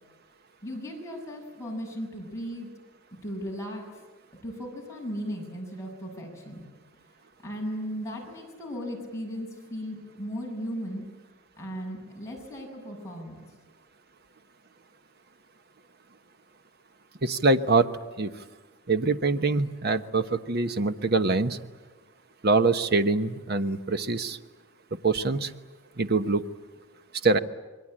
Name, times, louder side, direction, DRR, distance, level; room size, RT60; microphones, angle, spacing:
voice 1, 0.6-2.7 3.2-3.8 4.4-6.7 7.4-11.0 11.6-13.4, equal, 15° left, -2 dB, 7.0 m, -36 dB
voice 2, 17.2-17.9 18.2-18.3 18.9-21.6 22.4-24.4 25.0-25.5 26.0-26.4 27.2-27.4, right 3 dB, 50° right, 9 dB, 1.1 m, -24 dB
27.5 x 22.5 x 8.9 m, 1.3 s
head